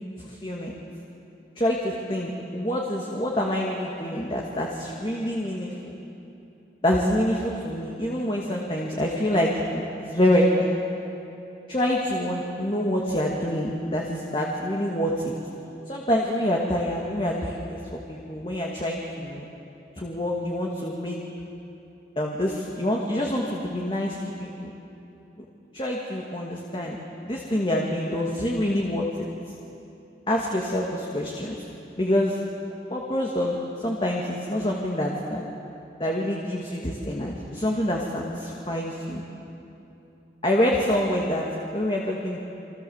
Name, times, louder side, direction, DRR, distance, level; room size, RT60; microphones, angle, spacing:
voice 1, 0.2-0.8 1.6-5.9 6.8-10.8 11.7-15.3 15.9-19.5 20.0-21.2 22.2-24.7 25.4-25.5 25.7-29.3 30.3-31.6 32.0-32.4 32.9-35.4 36.0-39.2 40.4-41.5 41.7-42.4, left 1 dB, 30° left, -2 dB, 2.2 m, -26 dB
29.5 x 24.0 x 7.3 m, 2.9 s
head